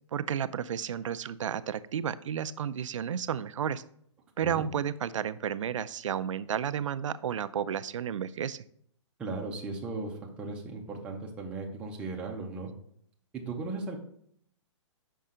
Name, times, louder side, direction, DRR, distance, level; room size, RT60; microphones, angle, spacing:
voice 1, 0.1-3.8 4.4-8.6, right 8 dB, 80° right, 14 dB, 0.4 m, -32 dB
voice 2, 9.2-12.7 13.3-14.0, right 3 dB, 5° right, -1 dB, 0.5 m, -37 dB
5.6 x 5.4 x 3.7 m, 0.66 s
hypercardioid pair, 165°, 16 cm